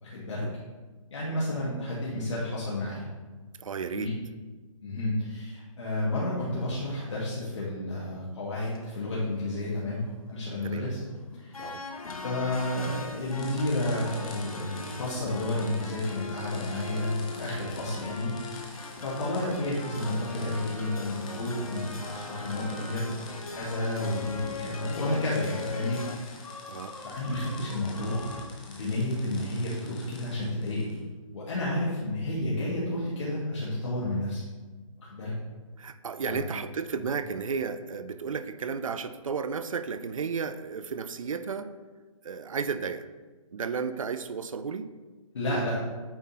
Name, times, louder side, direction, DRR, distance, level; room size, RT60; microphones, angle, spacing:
voice 1, 0.0-0.4 1.1-3.0 3.9-4.1 4.8-10.0 10.3-11.0 11.4-11.8 12.2-18.3 19.0-23.2 23.5-26.0 27.0-28.3 28.7-31.0 31.3-34.4 35.0-35.3 36.3-36.4 45.3-45.8, left 1 dB, 55° left, -8 dB, 1.9 m, -31 dB
voice 2, 3.6-4.1 10.6-10.9 11.6-11.8 19.4-19.6 26.7-26.9 35.8-41.7 42.2-43.1 43.5-44.9, right 5 dB, 75° right, 11 dB, 0.5 m, -33 dB
sound 1, 8.7-28.5, left 4 dB, 90° left, 1.0 m, -41 dB
sound 2, 13.3-31.0, left 3 dB, 15° left, 0.6 m, -49 dB
8.7 x 3.9 x 4.2 m, 1.3 s
hypercardioid pair, 175°, 18 cm